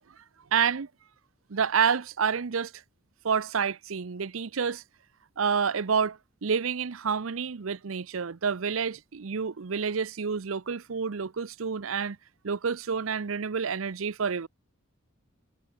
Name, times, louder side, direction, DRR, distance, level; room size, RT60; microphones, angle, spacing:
voice 1, 0.5-0.9 1.5-2.8 3.2-4.8 5.4-12.2 12.4-14.5, right 6 dB, 80° right, 0.7 m, -28 dB
head